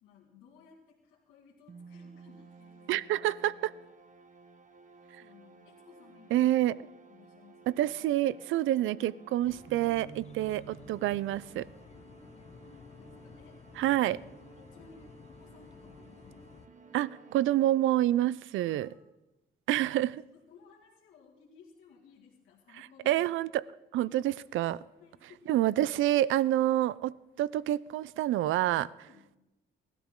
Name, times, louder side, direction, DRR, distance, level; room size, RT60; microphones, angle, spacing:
voice 1, 0.0-3.1 5.2-6.8 7.1-7.8 11.9-12.3 12.7-13.6 14.4-16.7 18.5-19.0 20.3-23.2 24.0-24.1 25.0-25.7 26.6-26.7 29.0-29.3, left 5 dB, 90° left, 2.1 m, -59 dB
harping around, 1.7-18.4, right 5 dB, 40° right, 1.3 m, -55 dB
voice 2, 2.9-3.7 6.3-6.8 7.7-11.7 13.8-14.2 16.9-18.9 19.7-20.2 22.7-23.6 23.9-24.8 25.5-28.9, right 14 dB, 80° right, 0.5 m, -28 dB
sound 1, 9.4-16.7, left 5 dB, 35° left, 0.8 m, -53 dB
19.5 x 12.5 x 3.7 m
cardioid pair, 90°, 20 cm